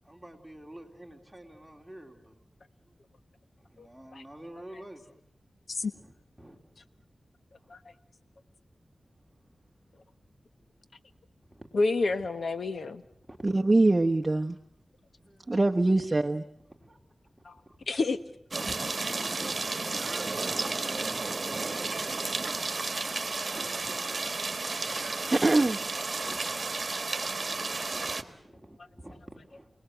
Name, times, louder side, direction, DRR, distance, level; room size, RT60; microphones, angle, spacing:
voice 1, 0.0-2.4 2.8-2.9 3.6-5.1 5.9-6.6 7.6-7.7 9.5-9.8 10.6-11.1 11.5-11.7 13.2-13.4 15.2-15.9 16.7-17.0 17.7-17.8 18.6-22.2 22.6-25.1 25.6-25.7 26.2-26.4 27.0-28.1 28.3-29.2 29.5-29.7, right 1 dB, 5° right, 2 dB, 3.5 m, -49 dB
voice 2, 11.7-13.0 17.4-17.5 17.9-18.2 24.9-25.0, left 3 dB, 75° left, 11 dB, 1.2 m, -28 dB
voice 3, 13.4-14.6 15.5-16.4 25.3-25.8, right 2 dB, 30° right, 4 dB, 1.0 m, -23 dB
sound 1, 18.5-28.2, right 3 dB, 50° right, 1.5 m, -32 dB
29.0 x 19.5 x 7.9 m, 0.74 s
wide cardioid pair, 70°, 0 cm